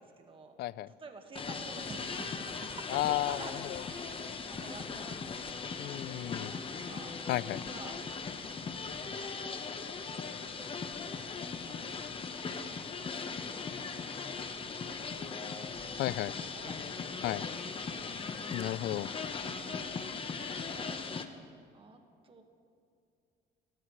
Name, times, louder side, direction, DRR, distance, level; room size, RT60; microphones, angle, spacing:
voice 1, 0.0-0.5 0.9-5.6 6.5-7.1 7.7-8.0 8.8-9.6 10.1-10.7 11.1-11.2 12.6-12.9 14.3-15.8 16.5-18.1 19.6-21.0 21.7-22.4, right 4 dB, 30° right, 4 dB, 1.7 m, -50 dB
voice 2, 0.6-0.9 2.9-3.4 3.7-3.8 5.8-6.5 7.3-7.6 16.0-16.3 17.2-17.4 18.5-19.1, left 15 dB, 75° left, 18 dB, 0.5 m, -33 dB
sound 1, 1.4-21.3, left 5 dB, 30° left, 1.1 m, -39 dB
29.0 x 14.0 x 3.2 m, 2.4 s
cardioid pair, 110°, 17 cm